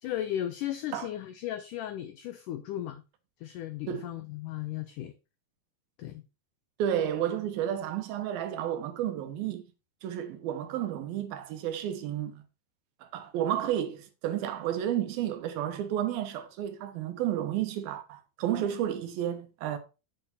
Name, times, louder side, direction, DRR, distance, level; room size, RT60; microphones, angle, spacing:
voice 1, 0.0-3.0 3.4-5.1 6.0-6.2, left 12 dB, 90° left, 1.8 m, -35 dB
voice 2, 6.8-9.6 10.0-12.4 13.0-19.8, right 10 dB, 75° right, 2.7 m, -31 dB
8.2 x 6.5 x 4.1 m
omnidirectional pair, 4.4 m